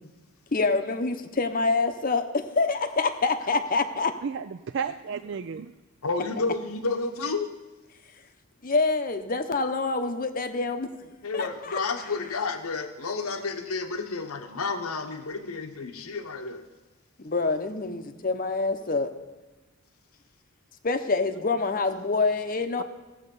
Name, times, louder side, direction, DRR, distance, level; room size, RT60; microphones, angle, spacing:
voice 1, 0.5-4.1 8.6-12.1 17.2-19.1 20.8-22.8, left 3 dB, 40° left, 8 dB, 0.8 m, -26 dB
voice 2, 4.2-5.7 22.8-22.9, right 6 dB, 55° right, 11 dB, 0.3 m, -32 dB
voice 3, 6.0-7.5 11.2-16.6, left 4 dB, 85° left, 6 dB, 1.1 m, -31 dB
16.5 x 7.8 x 5.4 m, 1.1 s
head